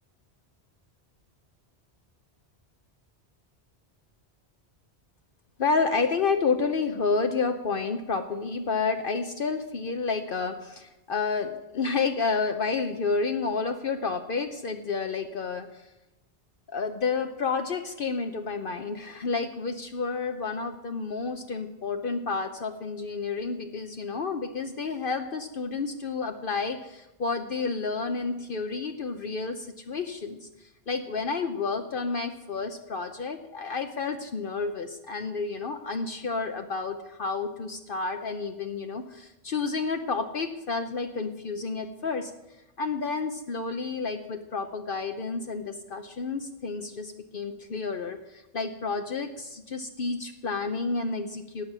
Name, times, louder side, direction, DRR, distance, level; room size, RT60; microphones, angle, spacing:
voice 1, 5.6-15.9 16.7-42.3 42.8-51.6, left 4 dB, 55° left, 7 dB, 0.9 m, -30 dB
17.0 x 7.2 x 6.0 m, 0.97 s
omnidirectional pair, 1.1 m